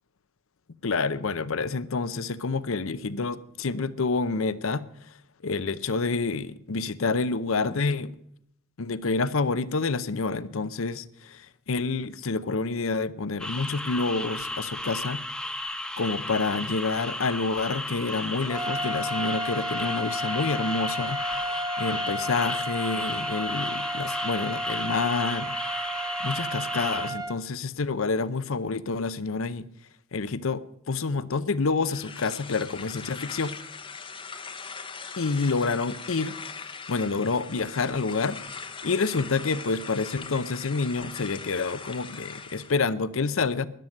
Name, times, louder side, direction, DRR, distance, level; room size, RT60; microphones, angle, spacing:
voice 1, 0.8-4.8 5.4-8.2 8.8-15.2 16.0-25.6 26.2-29.7 30.1-33.5 35.2-38.4 38.8-43.7, left 4 dB, 65° left, 0.7 m, -28 dB
sound 1, 13.4-27.1, left 1 dB, 5° left, 1.1 m, -34 dB
sound 2, 18.4-27.4, equal, 20° right, 0.8 m, -32 dB
sound 3, 31.8-42.8, left 5 dB, 25° left, 0.8 m, -41 dB
13.0 x 11.0 x 6.5 m
head